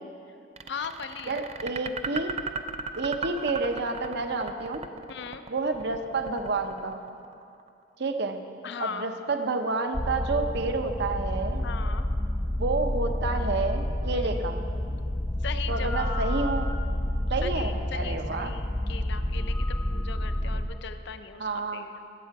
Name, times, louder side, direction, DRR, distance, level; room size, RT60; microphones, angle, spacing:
sound 1, 0.6-7.7, right 4 dB, 35° right, 0.4 m, -37 dB
voice 1, 0.7-1.4 5.1-5.4 8.6-9.1 11.6-12.1 14.1-14.5 15.4-16.5 17.4-21.9, left 6 dB, 65° left, 9 dB, 0.6 m, -38 dB
voice 2, 1.3-2.4 3.0-4.8 5.5-7.0 8.0-8.4 8.8-11.6 12.6-14.6 15.7-16.7 17.3-18.5 21.4-21.8, right 3 dB, 65° right, 6 dB, 0.8 m, -29 dB
sound 2, 9.9-20.7, left 1 dB, 10° left, 0.8 m, -29 dB
17.0 x 7.6 x 4.7 m, 2.6 s
head